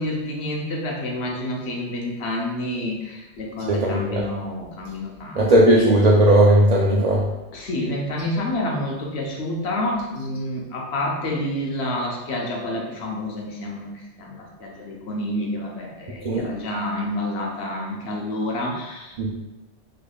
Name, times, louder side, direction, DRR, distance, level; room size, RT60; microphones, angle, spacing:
voice 1, 0.0-5.4 5.7-5.9 7.5-19.3, left 1 dB, 65° left, -1 dB, 0.9 m, -29 dB
voice 2, 3.7-4.2 5.4-7.2 16.2-16.4 19.2-19.3, right 1 dB, 65° right, -3 dB, 0.4 m, -16 dB
3.8 x 3.3 x 2.3 m, 1.0 s
omnidirectional pair, 1.2 m